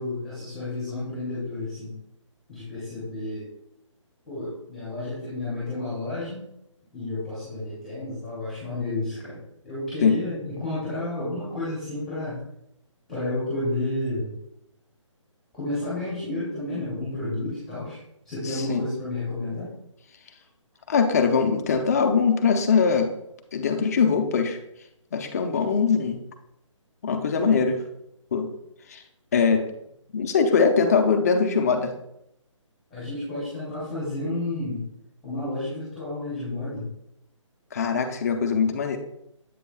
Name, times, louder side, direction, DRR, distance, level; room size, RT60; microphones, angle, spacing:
voice 1, 0.0-1.9 2.5-3.5 4.3-6.5 6.9-9.4 9.6-12.4 13.1-14.3 15.5-18.0 18.2-19.7 32.9-34.8 35.2-36.9, left 2 dB, ahead, -11 dB, 2.5 m, -31 dB
voice 2, 18.4-18.9 20.9-23.1 23.5-24.6 25.1-26.2 27.0-27.8 28.3-28.5 28.9-29.0 29.3-29.6 30.1-31.9 37.7-39.0, left 5 dB, 30° left, 6 dB, 0.7 m, -22 dB
8.4 x 6.8 x 2.3 m, 0.79 s
hypercardioid pair, 165°, 17 cm